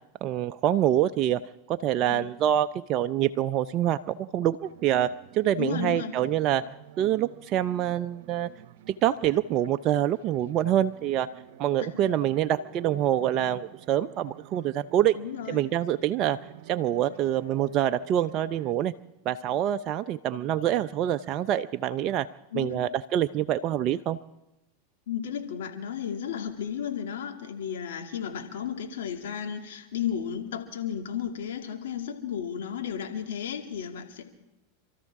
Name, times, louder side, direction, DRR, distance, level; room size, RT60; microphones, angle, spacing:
voice 1, 0.2-1.4 1.7-5.1 5.3-6.6 7.0-8.5 9.0-11.3 11.6-15.2 15.5-16.4 16.7-18.9 19.3-22.3 22.5-24.2, right 11 dB, 45° right, 9 dB, 0.5 m, -26 dB
sound 1, 4.6-18.7, right 11 dB, 65° right, 1.0 m, -49 dB
voice 2, 5.6-6.1 11.8-12.0 15.2-15.6 22.5-22.8 25.1-34.2, left 8 dB, 75° left, 3 dB, 2.6 m, -33 dB
29.5 x 13.0 x 3.7 m, 0.92 s
hypercardioid pair, 100°, 0 cm